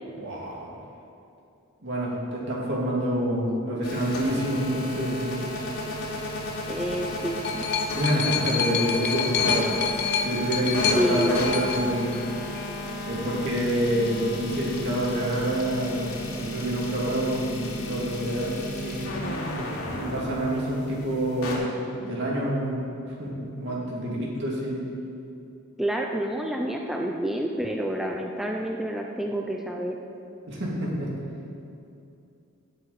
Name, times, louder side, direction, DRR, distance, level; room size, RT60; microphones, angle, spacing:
voice 1, 0.2-0.8 1.8-5.4 7.9-9.7 10.2-12.2 13.0-19.2 19.9-24.8 30.5-31.1, equal, 50° right, -4 dB, 2.4 m, -27 dB
sound 1, 3.8-21.6, left 1 dB, 80° left, 3.0 m, -33 dB
voice 2, 6.7-7.7 10.9-11.4 25.8-30.0, equal, ahead, 1 dB, 0.5 m, -28 dB
sound 2, 6.8-12.8 13.7-13.8, left 7 dB, 50° left, 0.7 m, -29 dB
18.0 x 7.0 x 4.1 m, 2.7 s
head